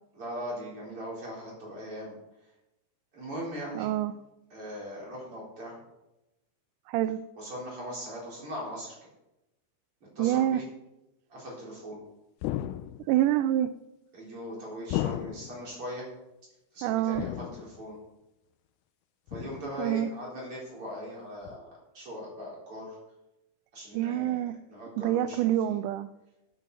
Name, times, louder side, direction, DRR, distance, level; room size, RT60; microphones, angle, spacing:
voice 1, 0.1-2.2 3.1-3.9 4.5-5.8 7.4-9.0 10.2-10.7 11.3-12.0 14.1-16.1 16.7-18.0 19.3-23.0 23.7-25.8, equal, 40° right, -4 dB, 5.1 m, -40 dB
voice 2, 3.8-4.1 6.9-7.2 10.2-10.6 13.1-13.7 16.8-17.3 19.8-20.1 23.9-24.6 25.0-26.1, right 13 dB, 85° right, 12 dB, 2.1 m, -26 dB
sound 1, 12.4-13.2 14.9-15.7 17.1-17.9 19.3-19.9 21.5-21.6, left 14 dB, 85° left, 2.0 m, -34 dB
9.3 x 9.2 x 6.7 m, 0.93 s
omnidirectional pair, 3.7 m